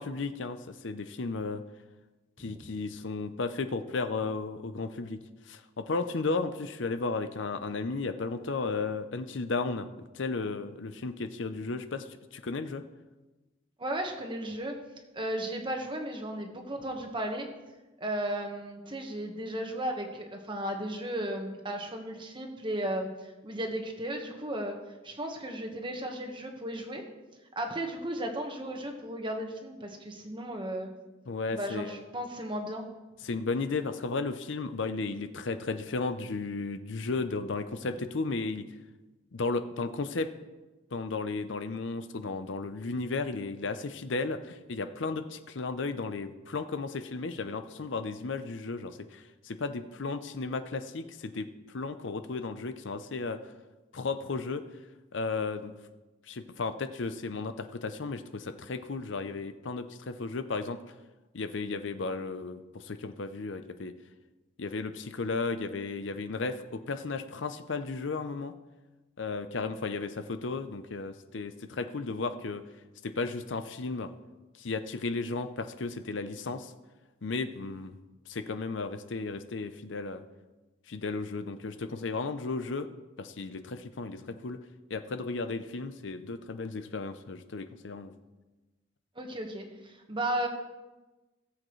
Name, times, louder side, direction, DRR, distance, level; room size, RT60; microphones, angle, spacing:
voice 1, 0.0-1.6 2.4-5.2 5.5-9.9 10.1-12.8 31.3-32.0 33.2-38.7 39.3-40.3 40.9-51.5 51.7-53.4 53.9-54.6 55.1-55.7 56.3-60.8 61.3-63.9 64.6-68.5 69.2-72.6 73.0-74.1 74.6-76.7 77.2-78.0 78.3-80.2 80.9-82.9 83.2-84.6 84.9-88.2, left 3 dB, 65° left, 10 dB, 0.6 m, -34 dB
voice 2, 13.8-14.7 15.1-17.5 18.0-24.7 25.0-27.0 27.5-30.9 31.5-32.8 89.2-90.5, right 1 dB, 25° right, 3 dB, 1.3 m, -35 dB
18.0 x 7.8 x 3.2 m, 1.1 s
head